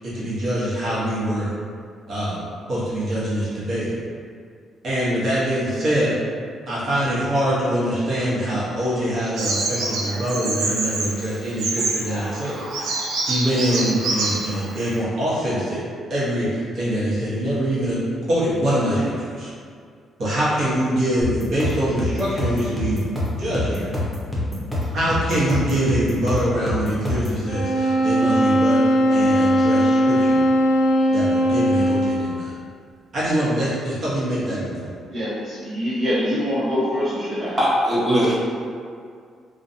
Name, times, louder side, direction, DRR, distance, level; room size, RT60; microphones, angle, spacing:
voice 1, 0.1-1.5 2.1-2.4 2.7-3.9 4.8-6.1 6.7-12.8 13.3-15.8 16.1-18.0 18.3-19.5 20.2-23.1 23.3-23.9 24.9-28.8 29.1-30.4 31.1-32.5 33.1-34.9, right 1 dB, 55° right, -9 dB, 1.0 m, -24 dB
Bird vocalization bird call bird song, 9.4-15.0, right 3 dB, 85° right, 0.4 m, -26 dB
sound 1, 21.2-27.4, left 1 dB, 10° left, 0.7 m, -26 dB
sound 2, 27.5-32.3, equal, 80° left, 0.5 m, -19 dB
voice 2, 35.1-37.6, equal, 70° right, -14 dB, 0.8 m, -24 dB
voice 3, 37.6-38.3, equal, 20° right, -9 dB, 1.0 m, -19 dB
2.5 x 2.2 x 2.6 m, 2.2 s
cardioid pair, 90°, 0 cm